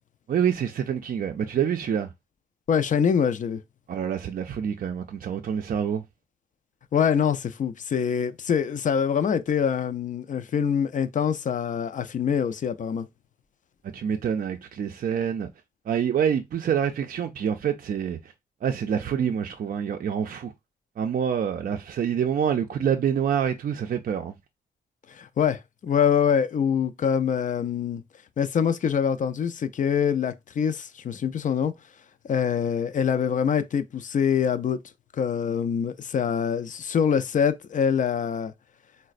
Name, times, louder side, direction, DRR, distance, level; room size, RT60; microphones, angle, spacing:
voice 1, 0.3-2.1 3.9-6.0 13.9-15.5 15.9-18.3 18.6-20.5 21.0-24.3, right 8 dB, 55° right, 0.4 m, -26 dB
voice 2, 2.7-3.6 6.9-13.1 25.1-28.0 28.4-31.7 32.3-34.8 35.1-38.5, left 7 dB, 50° left, 0.4 m, -24 dB
3.9 x 2.1 x 2.4 m
cardioid pair, 65°, 17 cm